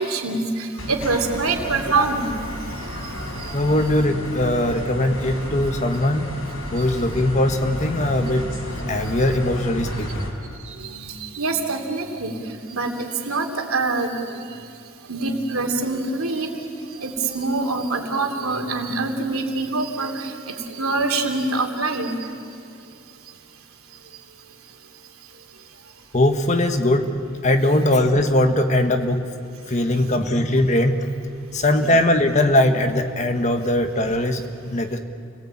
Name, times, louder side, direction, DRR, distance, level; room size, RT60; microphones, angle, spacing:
voice 1, 0.0-2.4 10.6-12.3 12.7-12.9 13.3-14.1 15.1-16.5 17.0-22.1 30.0-30.2 31.5-31.7, right 3 dB, 90° right, 4 dB, 2.9 m, -25 dB
sound 1, 0.8-10.3, left 1 dB, 75° left, 4.3 m, -32 dB
voice 2, 3.5-6.4 6.7-8.6 8.9-10.3 26.1-29.2 29.7-31.1 31.5-34.4 34.7-35.0, left 1 dB, 35° left, 7 dB, 1.4 m, -20 dB
29.0 x 19.0 x 8.8 m, 2.4 s
head